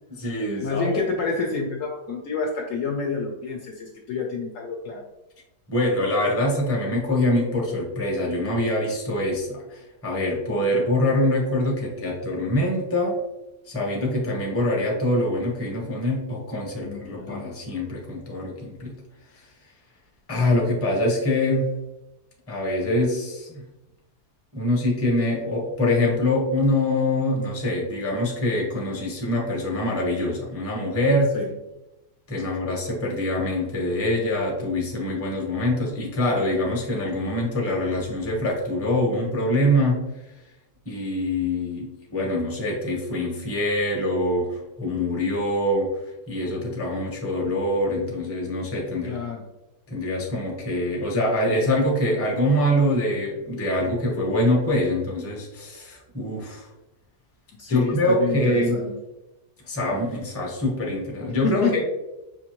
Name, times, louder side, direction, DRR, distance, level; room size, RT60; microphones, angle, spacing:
voice 1, 0.1-1.0 5.7-13.2 13.7-19.0 20.3-21.7 22.5-23.6 24.5-31.3 32.3-40.0 40.9-45.9 46.3-49.2 49.9-56.7 57.7-58.8 59.7-61.8, left 1 dB, 10° left, -2 dB, 0.7 m, -24 dB
voice 2, 0.6-5.0 10.5-10.8 16.8-17.5 31.3-31.5 32.5-32.6 49.0-49.4 57.6-58.9 61.4-61.8, left 4 dB, 65° left, 0 dB, 0.8 m, -29 dB
5.7 x 2.6 x 2.9 m, 0.96 s
omnidirectional pair, 1.7 m